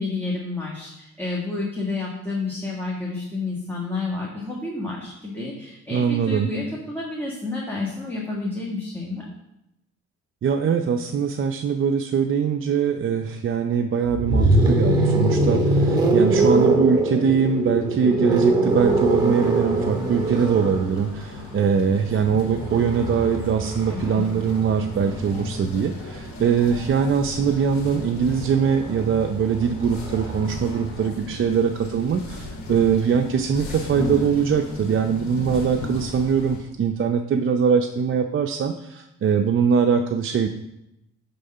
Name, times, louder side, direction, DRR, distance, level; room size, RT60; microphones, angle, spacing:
voice 1, 0.0-9.3 23.9-24.2, left 3 dB, 5° left, -4 dB, 1.6 m, -30 dB
voice 2, 5.9-6.5 10.4-40.5, right 6 dB, 45° right, 5 dB, 0.5 m, -22 dB
sound 1, 14.1-26.0 27.3-30.9, right 2 dB, 15° right, 1.9 m, -23 dB
sound 2, 18.7-36.6, left 2 dB, 70° left, 2.1 m, -36 dB
9.4 x 3.6 x 5.5 m, 0.87 s
cardioid pair, 90°, 30 cm